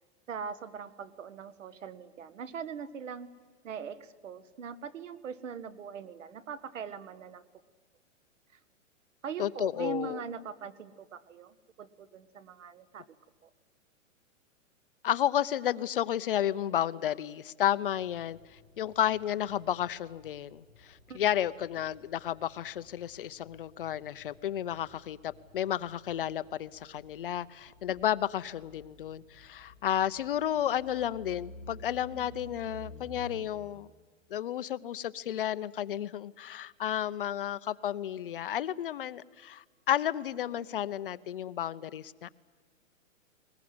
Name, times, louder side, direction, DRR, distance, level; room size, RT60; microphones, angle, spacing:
voice 1, 0.3-3.3 3.6-7.5 9.2-13.1 13.4-13.5 21.1-21.2, right 6 dB, 70° right, 15 dB, 1.7 m, -41 dB
voice 2, 9.4-10.2 15.0-18.4 18.8-33.9 34.3-42.3, left 11 dB, 45° left, 15 dB, 0.7 m, -32 dB
sound 1, 17.8-33.5, equal, 5° right, 7.5 m, -53 dB
21.0 x 20.5 x 9.5 m, 1.4 s
hypercardioid pair, 165°, 39 cm